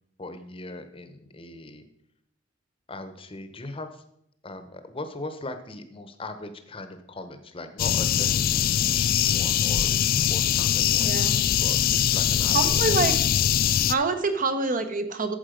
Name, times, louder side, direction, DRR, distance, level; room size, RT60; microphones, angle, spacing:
voice 1, 0.2-1.8 2.9-4.0 4.4-10.0 10.3-11.1 11.6-13.0, left 2 dB, 30° left, 9 dB, 0.8 m, -39 dB
sound 1, 7.8-13.9, left 10 dB, 50° left, 0.3 m, -22 dB
voice 2, 11.0-11.3 12.5-13.2 13.9-15.3, right 4 dB, 45° right, 8 dB, 0.9 m, -26 dB
8.9 x 7.3 x 5.1 m, 0.74 s
head